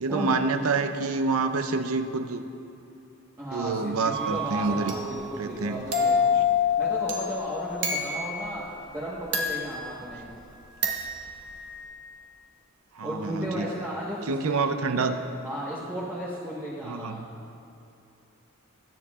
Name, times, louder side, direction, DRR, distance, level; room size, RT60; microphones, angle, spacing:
voice 1, 0.0-2.4 3.5-5.0 5.4-5.8 13.0-13.6 14.3-15.2 16.9-17.3, right 4 dB, 75° right, 9 dB, 0.6 m, -27 dB
voice 2, 3.4-10.3 13.0-15.1 15.4-17.2, right 1 dB, 15° right, -8 dB, 1.3 m, -35 dB
sound 1, 4.1-8.5 9.3-10.4 10.8-11.8, left 4 dB, 50° right, 1.4 m, -28 dB
20.5 x 9.9 x 2.4 m, 2.6 s
head